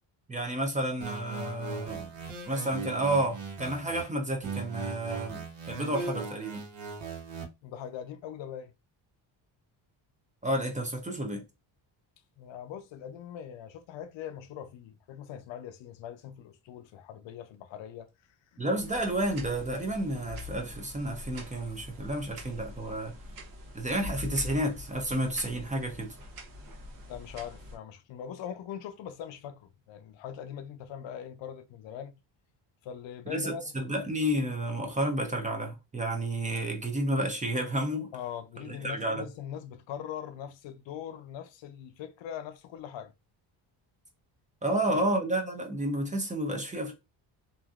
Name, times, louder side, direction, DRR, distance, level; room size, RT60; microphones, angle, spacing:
voice 1, 0.3-2.1 2.4-6.6 10.4-11.4 18.6-23.1 23.7-26.1 33.3-38.1 38.6-39.3 44.6-46.9, right 1 dB, 15° right, 0.6 m, -31 dB
sound 1, 1.0-4.0 4.4-7.4, right 5 dB, 90° right, 1.1 m, -38 dB
voice 2, 7.6-8.7 12.4-18.1 27.0-32.2 32.8-33.7 38.1-43.1 44.9-45.1, left 9 dB, 70° left, 0.6 m, -41 dB
sound 2, 18.8-27.8, left 2 dB, 45° right, 0.9 m, -44 dB
2.9 x 2.6 x 2.3 m
cardioid pair, 120°, 48 cm